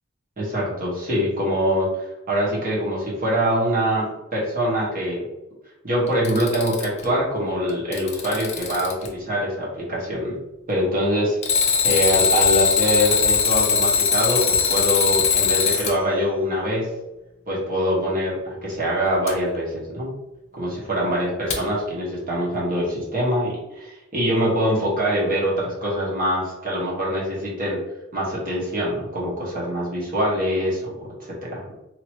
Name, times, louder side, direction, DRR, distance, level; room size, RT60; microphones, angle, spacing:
voice 1, 0.4-1.9 2.3-5.2 5.8-10.4 10.7-11.4 11.8-16.9 17.5-20.1 20.5-27.8 28.1-30.9 31.4-31.6, equal, 40° right, -6 dB, 1.3 m, -24 dB
Alarm, 6.1-7.1 7.7-9.1 11.4-16.0 19.3-19.4 21.5-21.6, left 6 dB, 30° left, 0.5 m, -20 dB
2.9 x 2.9 x 2.9 m, 0.98 s
head